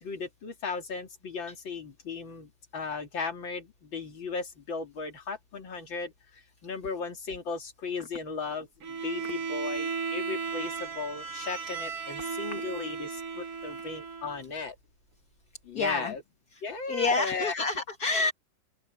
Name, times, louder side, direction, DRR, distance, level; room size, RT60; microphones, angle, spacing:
voice 1, 0.0-6.1 6.6-8.7 9.0-14.7 15.6-16.2 16.6-17.6, left 4 dB, 85° left, 3.4 m, -36 dB
Bowed string instrument, 8.8-14.4, right 5 dB, 55° right, 2.0 m, -35 dB
voice 2, 15.7-16.1 16.9-18.3, left 3 dB, 55° left, 2.1 m, -28 dB
open air
omnidirectional pair, 2.0 m